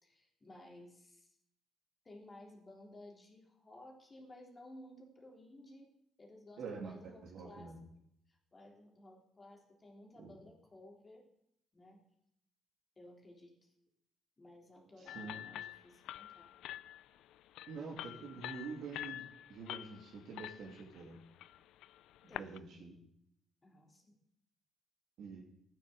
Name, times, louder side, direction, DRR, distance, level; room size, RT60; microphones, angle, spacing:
voice 1, 0.0-1.3 2.0-5.9 6.2-7.8 8.3-11.3 11.7-12.1 13.0-13.7 14.4-16.7 22.3-22.6 23.6-24.2, left 1 dB, 25° left, 0 dB, 3.5 m, -56 dB
voice 2, 6.6-7.8 10.2-10.4 15.0-15.4 17.7-21.2 22.3-23.0 25.2-25.4, right 4 dB, 70° right, -1 dB, 2.8 m, -47 dB
sound 1, 15.1-22.6, left 13 dB, 80° left, 0.4 m, -47 dB
12.0 x 9.5 x 7.9 m, 0.74 s
cardioid pair, 85°, 0 cm